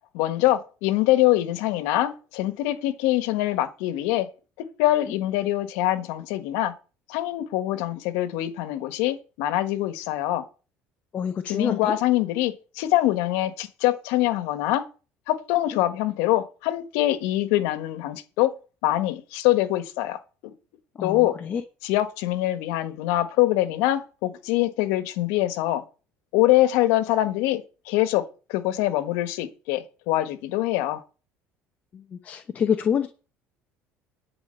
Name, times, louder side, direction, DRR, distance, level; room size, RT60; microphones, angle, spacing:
voice 1, 0.1-4.3 4.8-6.7 7.1-10.4 11.5-14.8 15.3-18.5 18.8-20.2 20.4-20.5 21.0-21.3 21.8-25.8 26.3-28.2 28.5-31.0, left 15 dB, 90° left, 1.5 m, -24 dB
voice 2, 11.1-11.9 20.9-21.6 31.9-33.1, left 7 dB, 35° left, 0.9 m, -27 dB
11.0 x 5.0 x 8.2 m
cardioid pair, 145°, 5 cm